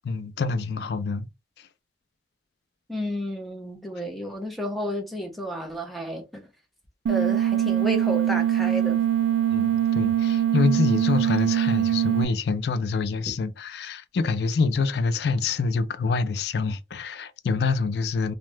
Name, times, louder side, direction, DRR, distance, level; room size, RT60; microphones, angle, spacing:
voice 1, 0.0-1.3 9.5-18.3, left 4 dB, 65° left, 0.3 m, -26 dB
voice 2, 2.9-6.4 7.1-9.0, equal, ahead, 0.6 m, -31 dB
sound 1, 7.1-12.2, right 11 dB, 90° right, 0.3 m, -23 dB
2.8 x 2.1 x 3.2 m
head